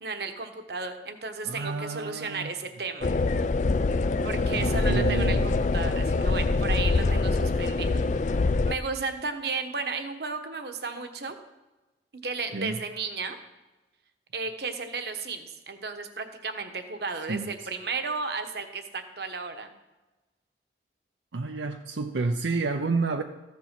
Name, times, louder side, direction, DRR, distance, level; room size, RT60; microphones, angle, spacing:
voice 1, 0.0-3.1 4.2-8.0 8.7-11.4 12.2-13.4 14.3-19.7, right 4 dB, 60° right, 7 dB, 1.1 m, -34 dB
voice 2, 1.4-2.5 4.5-5.6 12.5-12.8 17.3-17.5 21.3-23.2, right 3 dB, 85° right, 5 dB, 0.6 m, -30 dB
sound 1, 3.0-8.7, left 3 dB, 40° left, 0.4 m, -24 dB
14.5 x 7.5 x 5.9 m, 1.1 s
head